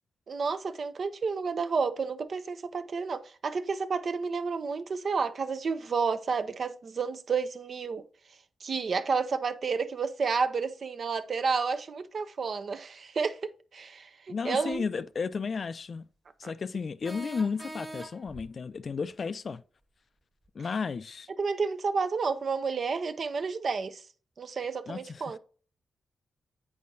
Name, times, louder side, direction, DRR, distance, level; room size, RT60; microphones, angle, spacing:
voice 1, 0.3-8.0 8.6-14.8 16.4-16.5 21.4-24.0 24.4-25.4, right 5 dB, 55° right, 0.6 m, -31 dB
voice 2, 14.3-16.0 16.4-19.6 20.5-21.3 24.9-25.2, left 5 dB, 50° left, 0.4 m, -33 dB
sound 1, 14.7-14.8 17.0-18.5, right 1 dB, 25° right, 1.4 m, -42 dB
8.5 x 4.6 x 2.7 m
cardioid pair, 80°, 0 cm